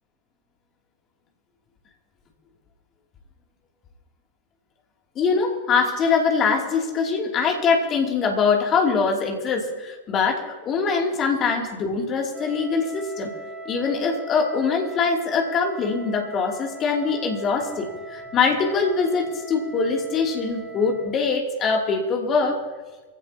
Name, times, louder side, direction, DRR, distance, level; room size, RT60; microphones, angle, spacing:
voice 1, 5.1-13.3 13.6-22.6, left 5 dB, 30° left, 1 dB, 2.8 m, -23 dB
Wind instrument woodwind instrument, 12.3-21.2, right 2 dB, 25° right, 2.9 m, -40 dB
23.5 x 16.5 x 2.9 m, 1.2 s
figure-of-eight pair, 90°, 0 cm